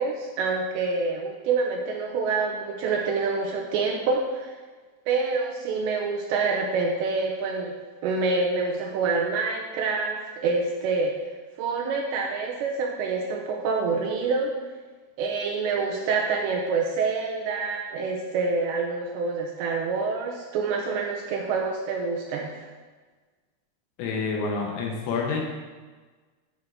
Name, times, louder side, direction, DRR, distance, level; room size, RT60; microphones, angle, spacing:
voice 1, 0.0-4.5 5.1-7.7 8.0-11.1 11.6-14.5 15.2-22.5, right 4 dB, 85° right, 0 dB, 2.6 m, -27 dB
voice 2, 24.0-25.5, left 4 dB, 75° left, -1 dB, 3.0 m, -28 dB
9.8 x 3.6 x 6.3 m, 1.4 s
omnidirectional pair, 5.7 m